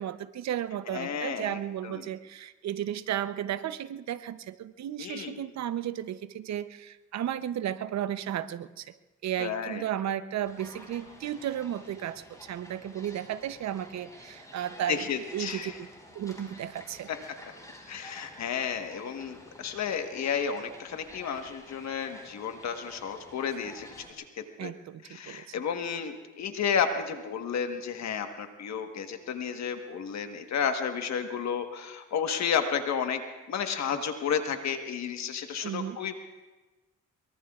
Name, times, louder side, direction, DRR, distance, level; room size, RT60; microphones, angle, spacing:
voice 1, 0.0-9.0 9.2-15.0 15.3-15.9 16.1-17.1 24.6-25.5 35.6-36.0, right 10 dB, 65° right, 13 dB, 0.8 m, -34 dB
voice 2, 0.9-1.6 1.8-2.0 5.0-5.4 9.4-9.8 14.9-15.8 17.1-17.2 17.9-23.9 24.2-24.7 25.0-33.2 33.5-36.1, left 7 dB, 65° left, 6 dB, 1.4 m, -32 dB
sound 1, 10.4-24.1, left 1 dB, 10° left, 5.2 m, -50 dB
23.5 x 22.5 x 2.4 m, 1.2 s
cardioid pair, 90°, 30 cm